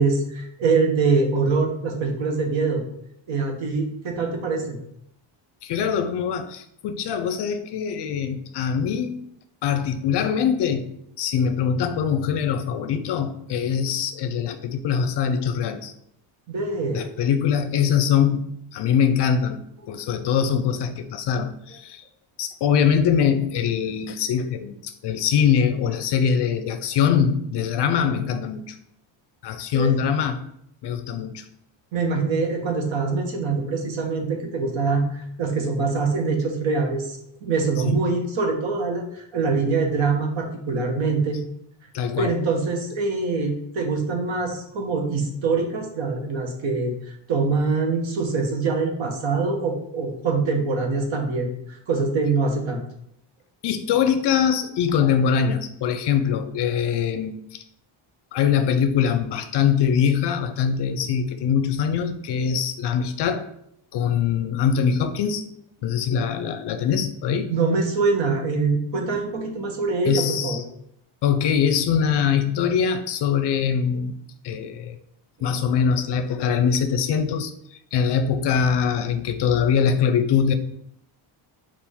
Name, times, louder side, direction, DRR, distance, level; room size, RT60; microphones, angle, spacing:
voice 1, 0.0-2.8 3.3-4.8 16.5-17.1 29.7-29.9 31.9-41.4 42.2-52.8 67.5-70.6 75.4-75.5, right 4 dB, 65° right, 2 dB, 1.1 m, -24 dB
voice 2, 5.6-9.2 9.6-10.9 11.2-15.9 16.9-18.4 18.7-22.0 22.4-28.8 29.4-30.4 30.8-31.4 37.8-38.0 41.9-42.3 53.6-57.6 58.3-63.5 63.9-65.4 65.8-67.5 70.1-70.6 71.2-74.1 74.4-75.0 75.4-77.5 77.9-80.5, left 7 dB, 60° left, 9 dB, 0.5 m, -23 dB
5.9 x 2.5 x 3.6 m, 0.72 s
cardioid pair, 145°, 49 cm